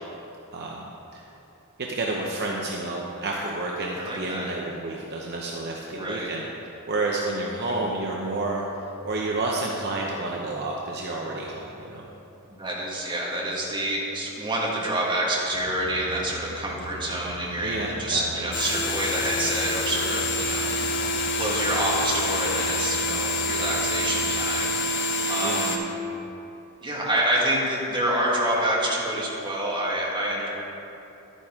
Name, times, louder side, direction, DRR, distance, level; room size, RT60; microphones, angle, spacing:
voice 1, 0.5-1.2 1.8-12.0 17.6-18.2 25.4-25.7, right 2 dB, 50° right, -2 dB, 0.8 m, -30 dB
voice 2, 4.0-4.5 5.9-6.3 12.6-21.0 21.3-24.8 25.3-25.8 26.8-30.5, right 1 dB, 20° right, -5 dB, 1.8 m, -27 dB
sound 1, 7.6-14.5, right 2 dB, 10° left, 2.6 m, -49 dB
sound 2, 15.5-24.5, right 2 dB, 80° right, 0.7 m, -41 dB
sound 3, 18.5-25.8, left 2 dB, 55° left, 1.1 m, -27 dB
11.5 x 9.4 x 3.7 m, 3.0 s
head